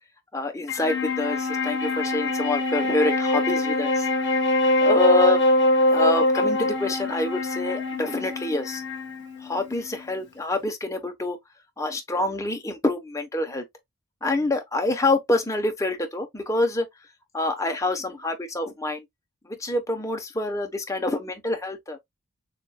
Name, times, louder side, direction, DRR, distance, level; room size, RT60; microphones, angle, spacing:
voice 1, 0.3-4.1 4.8-5.4 5.9-8.8 9.4-11.4 11.8-13.6 14.2-16.9 17.3-19.0 19.5-22.0, left 2 dB, 15° left, 0.9 m, -26 dB
Wind instrument woodwind instrument, 0.7-10.2, left 2 dB, 55° left, 1.3 m, -24 dB
6.7 x 2.6 x 2.3 m
head